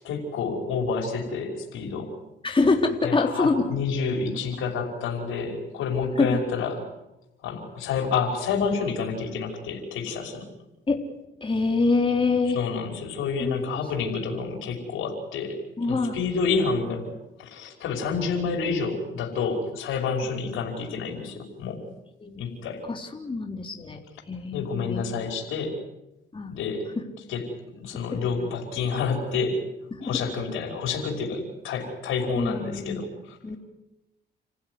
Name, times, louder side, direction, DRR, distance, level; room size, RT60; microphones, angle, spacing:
voice 1, 0.0-2.1 3.0-6.8 7.4-10.5 12.6-15.6 15.9-17.1 17.4-21.8 22.4-22.8 24.5-25.7 26.5-26.8 27.3-27.4 27.8-29.6 30.0-33.4, left 5 dB, 90° left, 2 dB, 5.7 m, -29 dB
voice 2, 2.4-3.6 6.2-6.4 10.9-11.0 11.4-12.6 13.4-13.5 15.8-16.2 22.2-22.4 22.9-24.0 24.3-25.3 26.3-26.5 28.1-28.2 30.0-30.2 32.3-33.0 33.4-33.6, left 3 dB, 25° left, 2 dB, 3.9 m, -25 dB
30.0 x 16.0 x 9.8 m, 0.93 s
cardioid pair, 90°, 20 cm